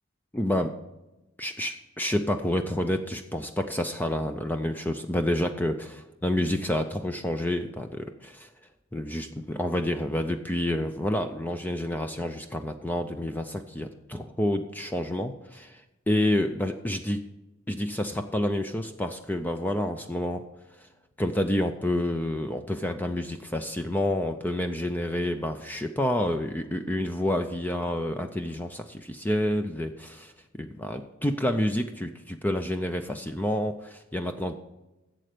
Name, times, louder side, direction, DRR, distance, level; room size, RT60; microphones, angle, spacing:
voice 1, 0.3-0.7 1.4-8.5 8.9-17.2 17.7-20.4 20.8-20.9 21.2-34.5, left 1 dB, 10° left, 6 dB, 0.5 m, -29 dB
11.5 x 7.8 x 5.0 m, 1.0 s
head